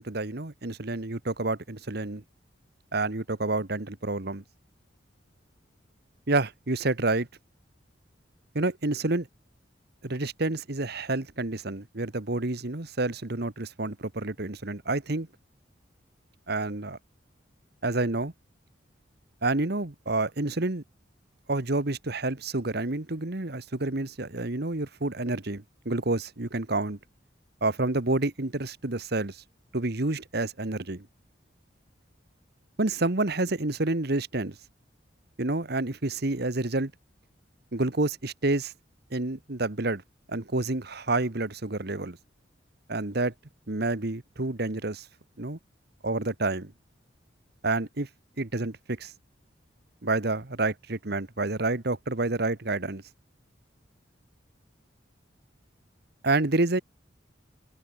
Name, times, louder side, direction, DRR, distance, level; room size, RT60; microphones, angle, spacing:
voice 1, 0.0-2.2 2.9-4.4 6.3-7.3 8.5-9.3 10.0-15.3 16.5-17.0 17.8-18.3 19.4-20.8 21.5-27.0 27.6-29.4 29.7-31.1 32.8-34.6 35.4-36.9 37.7-38.7 39.1-40.0 40.3-42.2 42.9-43.3 43.7-45.1 45.4-45.6 46.0-46.7 47.6-48.1 48.4-49.1 50.0-53.0 56.2-56.8, right 2 dB, 55° right, 1.5 m, -29 dB
open air
head